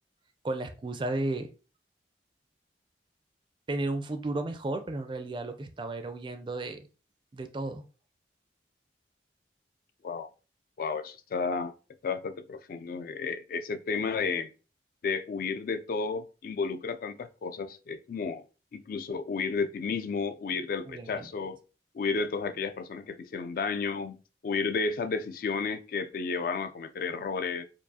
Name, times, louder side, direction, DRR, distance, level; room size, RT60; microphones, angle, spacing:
voice 1, 0.4-1.5 3.7-6.8 7.3-7.8 20.9-21.3, right 2 dB, 25° right, 0.4 m, -33 dB
voice 2, 10.8-11.7 12.0-14.5 15.0-18.4 18.7-21.6 21.9-24.2 24.4-27.6, left 4 dB, 50° left, 0.3 m, -32 dB
4.5 x 2.4 x 2.7 m
head